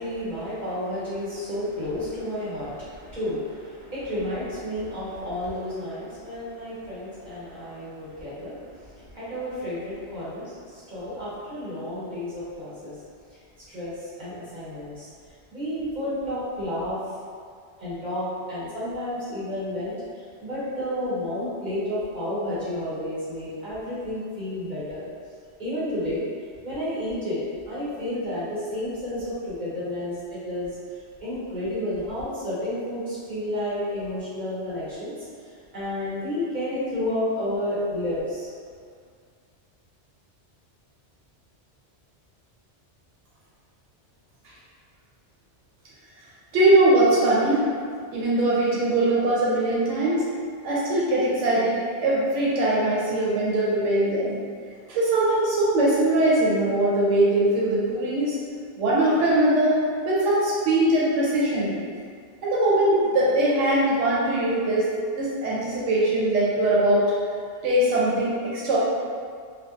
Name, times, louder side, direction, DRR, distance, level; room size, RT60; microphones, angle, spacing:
voice 1, 0.0-13.0 13.3-13.4 13.7-15.1 15.5-17.0 17.8-25.1 25.6-26.2 26.6-27.4 27.7-35.1 35.4-38.5, left 1 dB, 40° right, -12 dB, 1.2 m, -31 dB
voice 2, 46.5-47.7 48.1-50.2 50.6-54.4 54.9-58.4 58.8-59.8 60.1-61.8 62.4-64.9 65.2-67.1 67.6-68.8, right 1 dB, 90° right, -7 dB, 0.9 m, -21 dB
2.6 x 2.2 x 2.3 m, 2.1 s
omnidirectional pair, 1.2 m